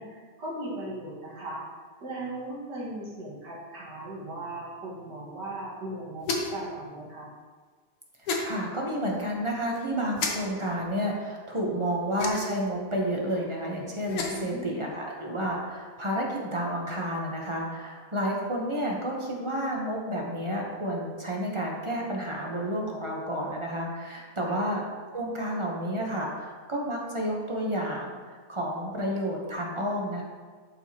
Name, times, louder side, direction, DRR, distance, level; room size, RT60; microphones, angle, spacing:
voice 1, 0.0-1.6 2.0-7.3 14.3-14.8 24.4-24.7, right 1 dB, 80° right, -5 dB, 2.3 m, -38 dB
sound 1, 6.2-6.7 8.3-8.5 10.2-10.3 12.2-12.6 14.0-14.5, left 3 dB, 65° left, 1.3 m, -30 dB
voice 2, 8.4-24.9 25.1-28.2 28.5-30.2, equal, 25° right, -2 dB, 0.7 m, -30 dB
11.0 x 4.7 x 2.9 m, 1.5 s
omnidirectional pair, 1.8 m